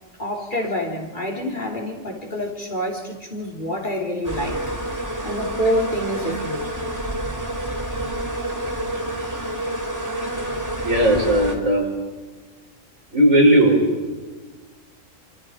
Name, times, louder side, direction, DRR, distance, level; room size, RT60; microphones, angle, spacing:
voice 1, 0.2-4.6 5.2-6.6, equal, 40° left, 0 dB, 3.6 m, -27 dB
sound 1, 4.2-11.6, right 1 dB, 15° right, 3.4 m, -28 dB
voice 2, 10.8-11.9 13.1-13.9, right 1 dB, 90° right, 0 dB, 5.7 m, -16 dB
28.0 x 27.0 x 5.1 m, 1.3 s
omnidirectional pair, 1.3 m